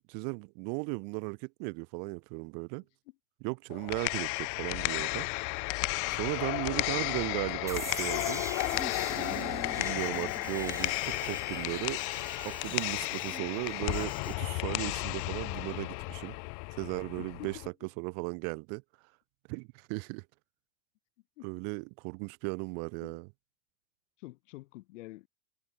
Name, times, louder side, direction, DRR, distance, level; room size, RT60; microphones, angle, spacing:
voice 1, 0.1-2.8 3.4-5.3 6.1-8.4 9.1-12.0 12.4-16.4 16.7-17.6 18.0-18.8 19.5-20.2 21.4-23.3, right 40 dB or more, 45° right, 1.2 m, -36 dB
sound 1, 3.7-17.7, left 38 dB, 45° left, 1.4 m, -33 dB
Alarm, 7.7-13.4 13.7-14.3, left 5 dB, 10° left, 1.7 m, -51 dB
sound 2, 7.7-14.5, right 3 dB, 5° right, 1.9 m, -44 dB
voice 2, 17.2-17.7 21.4-21.5 23.0-23.2 24.2-25.3, left 19 dB, 60° left, 7.7 m, -47 dB
hypercardioid pair, 115°, 42 cm